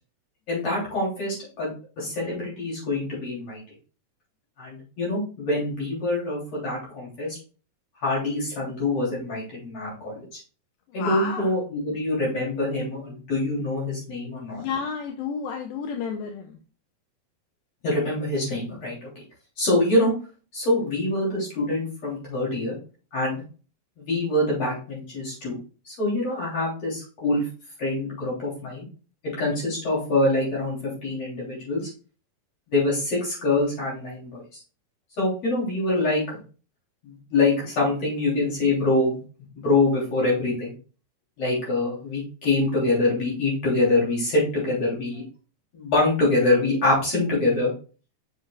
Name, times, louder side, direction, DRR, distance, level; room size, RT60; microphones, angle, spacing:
voice 1, 0.5-3.6 4.6-7.4 8.0-10.4 10.9-14.6 17.8-19.1 19.6-20.1 20.5-22.8 23.1-23.4 24.0-25.6 25.9-27.5 27.8-28.9 29.4-30.8 31.0-31.9 32.7-34.4 35.2-36.2 37.0-39.2 39.6-40.7 41.4-45.2 45.7-47.7, left 2 dB, 40° left, -5 dB, 4.1 m, -25 dB
voice 2, 11.0-11.5 14.6-16.6, left 6 dB, 80° left, 3 dB, 2.3 m, -31 dB
7.8 x 6.0 x 2.4 m, 0.37 s
omnidirectional pair, 4.8 m